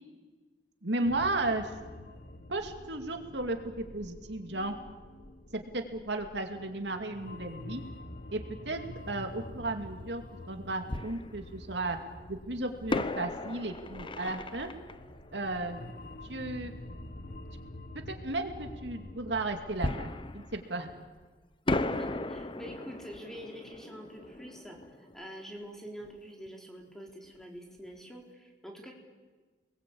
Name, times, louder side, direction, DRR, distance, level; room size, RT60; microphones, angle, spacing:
voice 1, 0.8-1.7 2.5-4.8 5.5-7.8 8.3-8.8 9.1-12.0 12.3-14.7 15.3-15.8 16.3-16.7 18.1-20.9, right 2 dB, 75° right, 5 dB, 2.5 m, -34 dB
sound 1, 1.0-20.1, left 1 dB, 55° left, 1.3 m, -47 dB
Fireworks, 9.6-9.7 10.9-12.0 12.9-16.4 19.8-21.3 21.7-26.2 26.5-26.6 27.1-27.3, left 2 dB, 30° left, 0.9 m, -37 dB
voice 2, 21.8-28.9, equal, 5° left, 0 dB, 4.0 m, -46 dB
29.5 x 21.0 x 8.7 m, 1.4 s
head